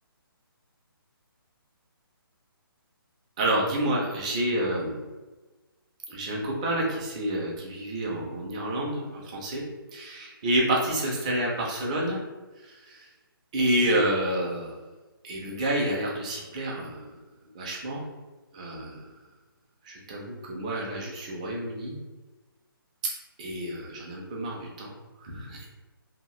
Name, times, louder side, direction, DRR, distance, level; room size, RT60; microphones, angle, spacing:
voice 1, 3.4-5.0 6.1-9.6 9.9-12.2 12.9-13.0 13.5-14.7 15.2-17.1 17.6-18.0 18.5-19.0 19.9-21.9 23.4-24.9 25.2-25.7, right 1 dB, 15° right, -3 dB, 0.4 m, -29 dB
2.8 x 2.2 x 3.0 m, 1.2 s
hypercardioid pair, 165°, 13 cm